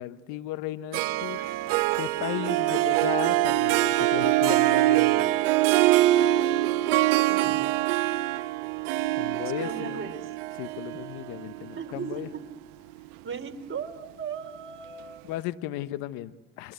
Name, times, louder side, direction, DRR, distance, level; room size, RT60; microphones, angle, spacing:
voice 1, 0.0-1.5 2.0-5.4 9.2-10.1 10.5-12.3 15.2-16.7, left 15 dB, 70° left, 12 dB, 1.2 m, -35 dB
Harp, 0.9-12.4, right 16 dB, 75° right, 1.1 m, -24 dB
voice 2, 7.1-7.6 9.6-10.3 11.8-12.2 13.2-15.3, right 6 dB, 35° right, 5 dB, 4.5 m, -37 dB
28.5 x 25.0 x 8.1 m, 1.0 s
hypercardioid pair, 70°, 38 cm